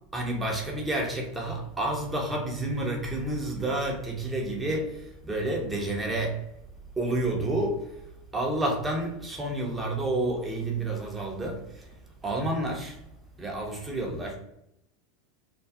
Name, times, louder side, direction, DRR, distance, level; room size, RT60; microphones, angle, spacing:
voice 1, 0.1-6.5 7.0-13.0 13.4-14.4, right 1 dB, 15° right, 0.7 m, -30 dB
2.5 x 2.4 x 2.3 m
figure-of-eight pair, 85°, 0 cm